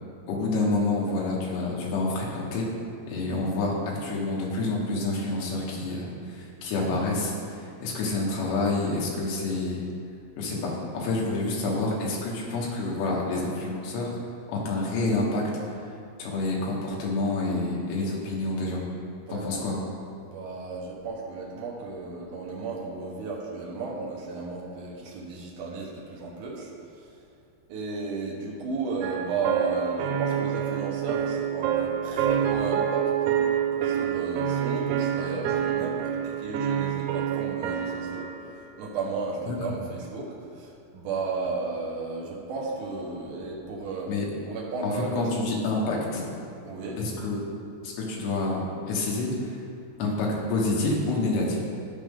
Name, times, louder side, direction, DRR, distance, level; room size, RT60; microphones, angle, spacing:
voice 1, 0.3-2.7 3.1-9.8 10.4-14.1 14.5-15.4 15.8-15.9 16.2-18.8 19.3-19.8 39.5-39.6 44.1-44.3 44.8-46.2 47.0-47.4 47.8-48.6 48.9-49.6 50.0-51.6, left 2 dB, 75° left, -3 dB, 3.4 m, -28 dB
voice 2, 19.3-19.7 20.2-26.7 27.7-33.1 33.8-38.3 38.8-44.1 44.5-45.3 46.7-47.0, right 4 dB, 70° right, -4 dB, 2.0 m, -34 dB
sound 1, 29.0-38.5, right 9 dB, 85° right, 3.0 m, -27 dB
14.0 x 5.1 x 3.7 m, 2.4 s
omnidirectional pair, 5.2 m